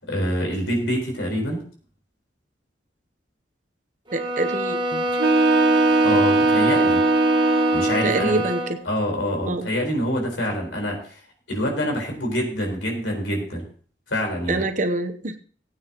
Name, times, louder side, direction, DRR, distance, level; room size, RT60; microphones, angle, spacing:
voice 1, 0.0-1.6 6.0-7.0 7.7-8.4 8.8-11.2 11.5-13.6 14.1-14.6, equal, 80° left, 1 dB, 4.4 m, -26 dB
sound 1, 4.1-8.8, right 1 dB, 25° right, 1.3 m, -25 dB
voice 2, 4.1-5.1 8.0-8.6 9.5-9.7 14.5-15.4, right 2 dB, 40° right, 8 dB, 0.9 m, -25 dB
sound 2, 5.1-8.1, right 2 dB, 70° right, 0.9 m, -19 dB
20.0 x 8.8 x 3.0 m, 0.43 s
head